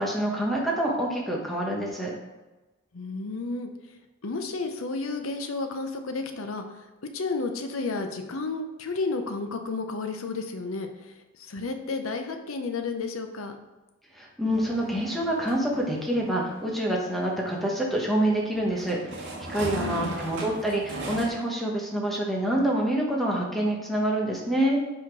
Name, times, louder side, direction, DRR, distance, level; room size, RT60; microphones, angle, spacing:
voice 1, 0.0-2.1 14.1-24.8, right 1 dB, ahead, -2 dB, 1.1 m, -27 dB
voice 2, 2.9-6.9 7.1-13.5 19.7-20.2, left 3 dB, 85° left, 5 dB, 0.7 m, -32 dB
sound 1, 14.5-21.3, right 2 dB, 60° right, 1.6 m, -39 dB
5.8 x 5.0 x 4.7 m, 1.1 s
head